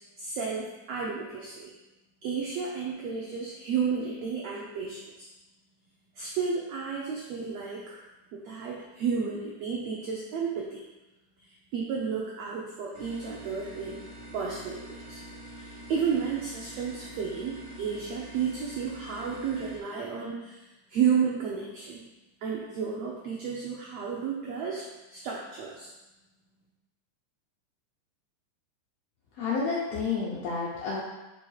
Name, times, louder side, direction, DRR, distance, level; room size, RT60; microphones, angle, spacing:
voice 1, 0.2-1.7 2.2-5.3 6.1-8.1 8.3-10.8 11.4-14.0 14.3-15.2 15.5-22.0 22.4-24.8 25.1-25.9, right 6 dB, 80° right, -4 dB, 1.5 m, -32 dB
sound 1, 12.9-19.8, right 1 dB, 60° right, 1.4 m, -45 dB
voice 2, 29.4-31.0, left 4 dB, 75° left, -5 dB, 1.6 m, -30 dB
7.2 x 5.7 x 2.4 m, 1.1 s
omnidirectional pair, 3.7 m